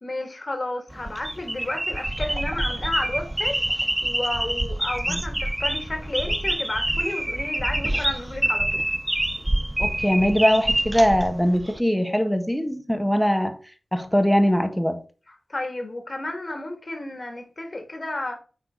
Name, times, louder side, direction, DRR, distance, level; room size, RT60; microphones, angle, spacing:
voice 1, 0.0-3.6 4.0-8.8 15.3-18.4, left 2 dB, 40° left, 2.5 m, -32 dB
sound 1, 0.9-11.8, right 1 dB, 20° right, 0.4 m, -26 dB
voice 2, 9.8-13.6 13.9-15.0, equal, 5° left, 1.4 m, -21 dB
8.1 x 4.5 x 4.0 m
cardioid pair, 45°, 0 cm